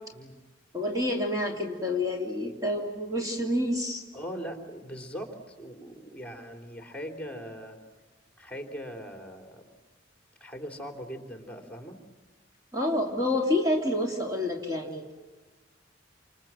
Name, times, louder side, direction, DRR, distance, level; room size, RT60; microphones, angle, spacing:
voice 1, 0.7-4.0 12.7-15.1, left 1 dB, 20° right, 1 dB, 2.7 m, -28 dB
voice 2, 4.1-7.8 8.4-9.7 10.4-12.0, equal, 5° left, 5 dB, 3.4 m, -40 dB
28.5 x 27.5 x 7.6 m, 1.2 s
head